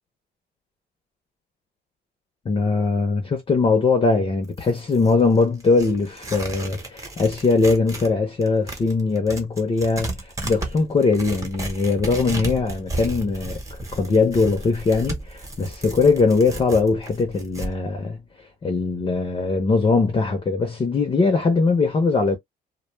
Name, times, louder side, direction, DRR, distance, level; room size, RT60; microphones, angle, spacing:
voice 1, 2.4-22.4, left 4 dB, 30° left, 0.7 m, -21 dB
Tearing, 4.4-8.1 8.4-17.7, right 2 dB, 15° right, 1.0 m, -34 dB
2.2 x 2.2 x 3.1 m
cardioid pair, 125°, 18 cm